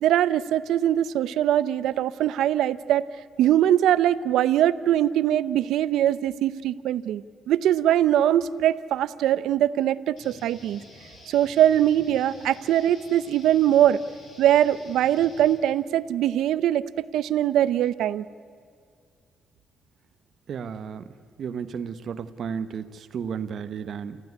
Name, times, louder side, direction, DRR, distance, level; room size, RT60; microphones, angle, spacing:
voice 1, 0.0-3.0 3.4-10.8 11.3-14.0 14.4-18.2, right 11 dB, 80° right, 16 dB, 0.7 m, -22 dB
sound 1, 10.2-15.5, left 2 dB, 60° left, 7.5 m, -49 dB
voice 2, 20.5-21.0 21.4-24.2, right 7 dB, 60° right, 11 dB, 1.0 m, -33 dB
29.0 x 15.0 x 9.5 m, 2.2 s
cardioid pair, 90°, 0 cm